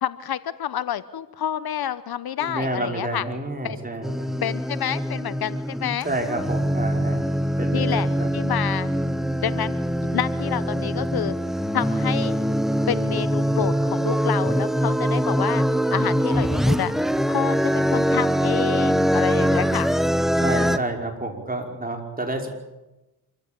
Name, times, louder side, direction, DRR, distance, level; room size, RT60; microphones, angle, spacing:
voice 1, 0.0-3.2 3.6-3.8 4.4-6.1 7.7-8.1 8.3-8.9 9.4-11.4 11.7-12.3 12.9-15.6 15.9-16.9 17.3-19.9, left 10 dB, 65° left, 15 dB, 1.0 m, -28 dB
voice 2, 2.4-4.3 6.0-7.3 7.6-8.3 20.4-22.5, right 2 dB, 20° right, 3 dB, 5.4 m, -29 dB
sound 1, 4.0-20.8, equal, ahead, 1.0 m, -23 dB
26.5 x 15.0 x 9.0 m, 1.0 s
cardioid pair, 65°, 39 cm